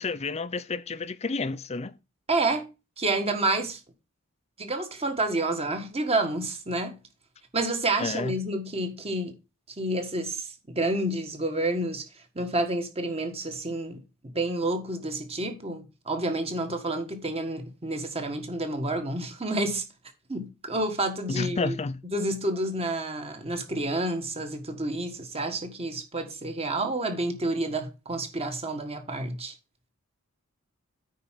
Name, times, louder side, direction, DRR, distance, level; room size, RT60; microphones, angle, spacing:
voice 1, 0.0-2.0 8.0-8.4 21.3-22.0, left 4 dB, 30° left, 0.5 m, -30 dB
voice 2, 2.3-2.7 3.0-3.8 4.6-7.0 7.5-9.3 9.8-12.1 12.3-14.0 14.3-19.8 20.3-21.8 22.1-29.5, right 2 dB, 30° right, 1.5 m, -29 dB
9.3 x 4.5 x 5.8 m
head